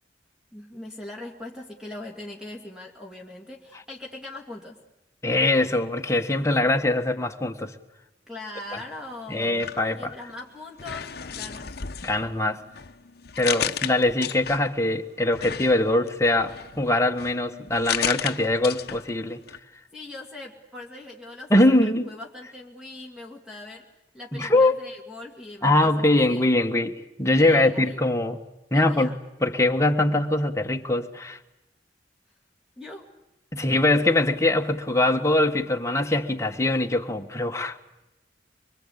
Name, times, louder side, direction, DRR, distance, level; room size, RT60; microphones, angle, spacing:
voice 1, 0.5-4.8 8.3-9.6 10.0-11.8 19.9-23.9 24.1-26.5 27.3-28.0 28.7-29.2 32.8-33.1, left 2 dB, 5° right, -1 dB, 2.4 m, -41 dB
voice 2, 5.2-7.7 8.7-8.8 9.3-10.1 12.0-12.6 13.4-19.4 21.5-22.1 24.3-24.7 25.6-28.4 28.7-29.1 29.4-31.4 33.5-37.8, left 2 dB, 15° left, 4 dB, 1.5 m, -22 dB
sound 1, 9.4-10.4 10.8-14.8 15.3-19.2 19.5-19.6, left 9 dB, 60° left, 0.9 m, -33 dB
24.5 x 24.0 x 8.5 m, 0.98 s
head